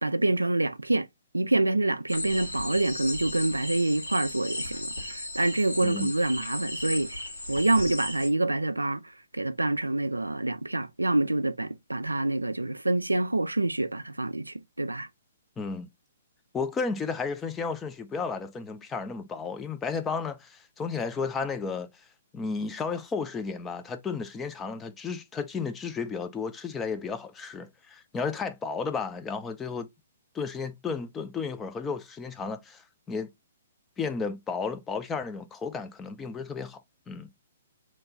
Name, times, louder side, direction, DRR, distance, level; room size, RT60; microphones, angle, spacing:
voice 1, 0.0-1.1 1.3-7.2 7.5-15.1, right 2 dB, 90° right, 0.3 m, -27 dB
sound 1, 2.1-8.3, left 1 dB, 85° left, 1.4 m, -36 dB
voice 2, 5.8-6.1 15.6-15.9 16.5-21.9 22.3-29.9 30.3-33.3 34.0-36.8 37.1-37.3, left 5 dB, 15° left, 0.5 m, -33 dB
3.1 x 2.2 x 3.6 m
figure-of-eight pair, 125°, 0 cm